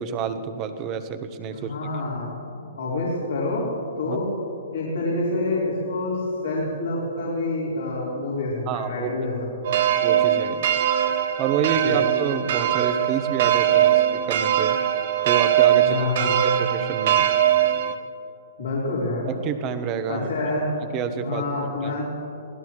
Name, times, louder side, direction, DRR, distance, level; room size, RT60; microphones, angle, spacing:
voice 1, 0.0-1.9 4.1-4.2 8.7-9.1 10.0-10.7 11.4-14.8 15.2-17.3 19.3-20.3 20.9-21.4 21.8-22.0, right 7 dB, 30° right, 9 dB, 1.2 m, -28 dB
voice 2, 1.5-3.7 4.0-4.2 4.7-9.8 11.8-12.0 15.8-16.4 18.6-19.2 20.1-20.7 21.1-22.0, left 2 dB, 75° left, -7 dB, 4.1 m, -27 dB
sound 1, 9.6-17.9, right 11 dB, 55° right, 1.0 m, -21 dB
25.5 x 17.0 x 3.2 m, 2.7 s
hypercardioid pair, 125°, 0 cm